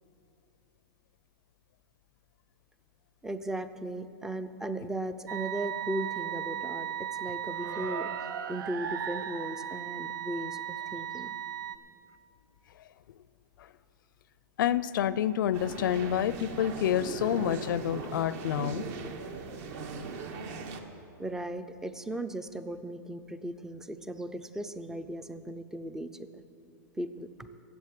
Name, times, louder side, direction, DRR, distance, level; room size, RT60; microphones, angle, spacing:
voice 1, 3.2-11.4 21.2-26.4 27.0-27.5, right 1 dB, 5° right, 11 dB, 0.4 m, -37 dB
sound 1, 5.3-11.8, right 9 dB, 80° right, 0.7 m, -36 dB
voice 2, 14.6-18.8, left 10 dB, 75° left, 17 dB, 0.5 m, -28 dB
sound 2, 15.5-20.8, right 4 dB, 50° right, 1.2 m, -39 dB
14.0 x 7.8 x 8.2 m, 2.7 s
supercardioid pair, 150°, 11 cm